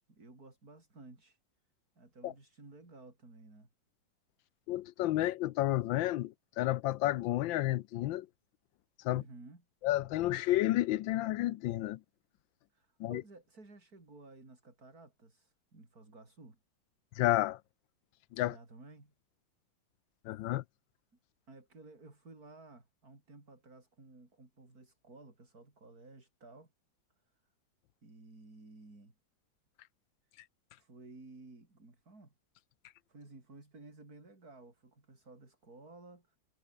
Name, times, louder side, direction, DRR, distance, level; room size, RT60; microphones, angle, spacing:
voice 1, 0.0-1.4 2.0-3.7 9.1-9.6 12.7-16.6 18.4-19.1 21.5-26.7 28.0-29.1 30.7-32.3 33.1-36.4, right 2 dB, 50° right, 5.7 m, -55 dB
voice 2, 4.7-8.3 9.0-9.2 9.8-12.0 13.0-13.2 17.2-17.6 18.3-18.6 20.2-20.6, left 15 dB, 85° left, 1.4 m, -31 dB
omnidirectional pair, 2.1 m